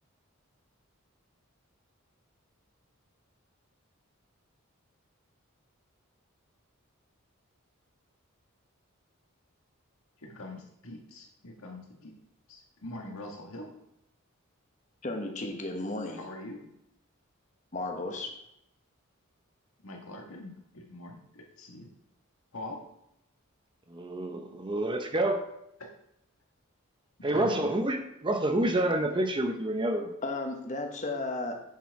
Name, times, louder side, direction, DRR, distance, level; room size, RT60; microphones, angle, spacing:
voice 1, 10.2-12.2 12.5-13.7 16.0-16.6 19.8-21.9 22.5-22.8 25.8-25.9 27.3-27.5, left 1 dB, 75° left, 1 dB, 1.6 m, -43 dB
voice 2, 15.0-16.2 17.7-18.3 30.2-31.5, left 2 dB, 35° left, 3 dB, 1.1 m, -34 dB
voice 3, 23.9-25.5 27.2-30.1, right 1 dB, 20° right, 6 dB, 0.6 m, -28 dB
9.3 x 4.5 x 4.7 m, 0.80 s
head